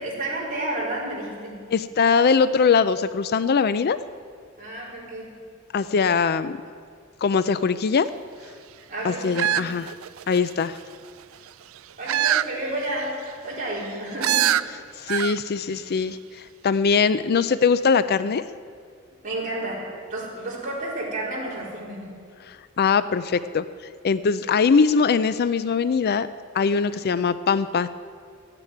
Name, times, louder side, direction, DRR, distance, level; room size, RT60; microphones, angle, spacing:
voice 1, 0.0-1.7 4.6-5.4 8.8-9.6 12.0-14.5 19.2-22.2, right 1 dB, 40° right, -5 dB, 4.5 m, -31 dB
voice 2, 1.7-4.0 5.7-6.6 7.2-8.1 9.0-9.9 10.3-10.8 15.0-18.4 22.5-23.6 24.0-26.3 26.5-27.9, left 5 dB, 50° left, 14 dB, 0.4 m, -21 dB
sound 1, 9.4-10.5 12.1-12.5 12.9-13.0 14.2-14.6 15.1-15.4 15.7-15.8, right 11 dB, 70° right, 0.4 m, -23 dB
14.5 x 9.8 x 9.3 m, 2.1 s
head